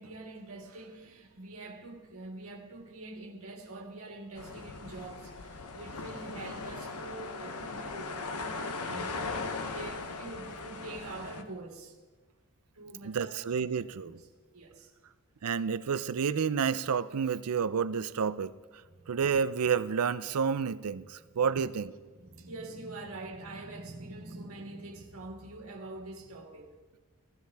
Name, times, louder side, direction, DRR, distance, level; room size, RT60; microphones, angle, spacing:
voice 1, 0.0-12.0 12.7-14.3 14.5-14.9 19.0-19.1 22.1-26.8, right 2 dB, 70° right, 1.7 m, -45 dB
sound 1, 4.4-11.4, left 3 dB, 90° left, 0.9 m, -39 dB
voice 2, 13.0-14.2 15.4-18.5 19.1-21.9, right 6 dB, 85° right, 0.5 m, -30 dB
15.5 x 14.5 x 3.5 m
head